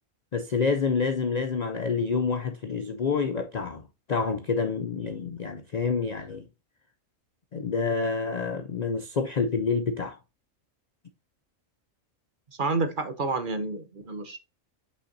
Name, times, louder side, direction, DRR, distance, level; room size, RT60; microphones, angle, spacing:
voice 1, 0.3-3.8 4.1-6.4 7.5-10.2, left 5 dB, 55° left, 0.4 m, -28 dB
voice 2, 12.6-14.4, right 3 dB, 40° right, 1.0 m, -29 dB
6.5 x 5.6 x 2.7 m
omnidirectional pair, 1.4 m